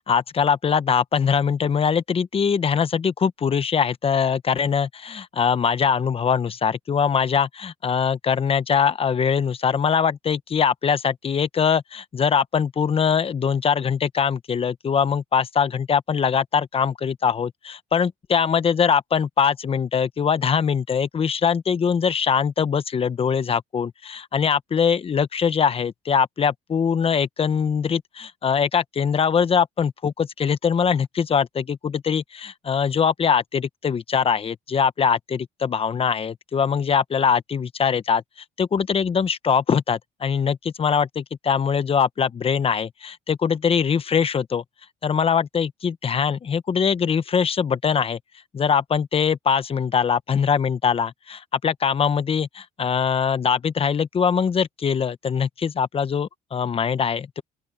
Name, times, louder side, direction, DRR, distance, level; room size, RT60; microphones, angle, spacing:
voice 1, 0.0-38.2 38.6-44.6 45.0-48.2 48.5-57.4, left 6 dB, 35° left, 1.0 m, -22 dB
open air
cardioid pair, 110°, 17 cm